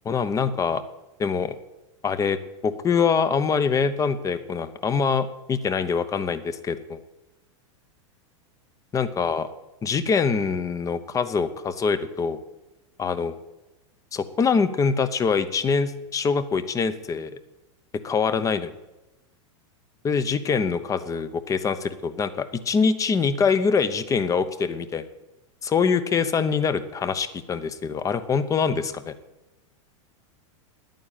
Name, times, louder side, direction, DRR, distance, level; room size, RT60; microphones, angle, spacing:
voice 1, 0.0-0.8 1.2-1.6 2.0-2.4 2.6-7.0 8.9-9.5 9.8-12.4 13.0-13.4 14.1-17.3 18.0-18.7 20.0-25.1 25.6-29.1, left 5 dB, 20° left, 13 dB, 0.9 m, -24 dB
10.0 x 9.1 x 9.1 m, 1.0 s
supercardioid pair, 130°, 16 cm